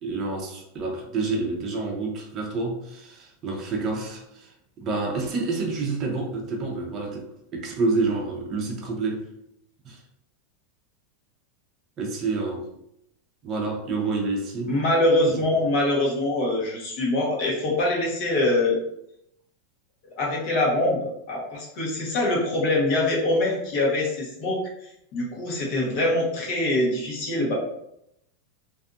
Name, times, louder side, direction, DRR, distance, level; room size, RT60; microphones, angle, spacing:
voice 1, 0.0-4.5 4.8-9.2 9.8-10.0 12.0-12.7 13.4-14.7, right 3 dB, 30° right, 0.6 m, -28 dB
voice 2, 14.7-18.8 20.2-24.6 25.1-27.5, left 1 dB, 50° left, 1.0 m, -24 dB
2.6 x 2.4 x 2.4 m
supercardioid pair, 140°, 0 cm